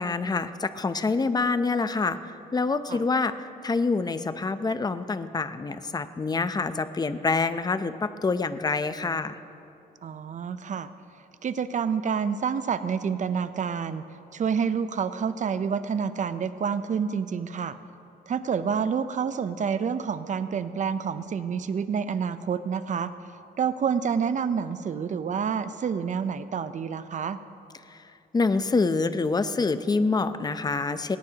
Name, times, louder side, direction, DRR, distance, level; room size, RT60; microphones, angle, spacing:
voice 1, 0.0-2.2 2.5-9.4 27.9-28.0 28.3-31.2, left 4 dB, 25° left, 11 dB, 0.6 m, -26 dB
voice 2, 10.0-10.9 11.4-14.1 14.3-17.8 18.3-23.1 23.6-27.4, right 6 dB, 50° right, 12 dB, 0.6 m, -28 dB
19.0 x 18.0 x 2.9 m, 2.6 s
cardioid pair, 95°, 16 cm